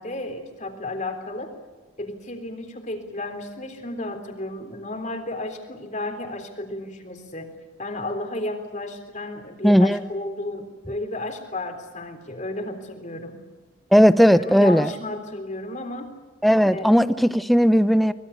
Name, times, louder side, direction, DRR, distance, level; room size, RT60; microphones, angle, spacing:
voice 1, 0.0-1.5 2.0-7.5 7.8-13.4 14.3-16.1 16.7-16.9, left 1 dB, 35° left, 5 dB, 3.6 m, -33 dB
voice 2, 9.6-10.0 13.9-14.9 16.4-18.1, equal, ahead, 13 dB, 0.7 m, -16 dB
24.5 x 21.0 x 8.2 m, 1.2 s
head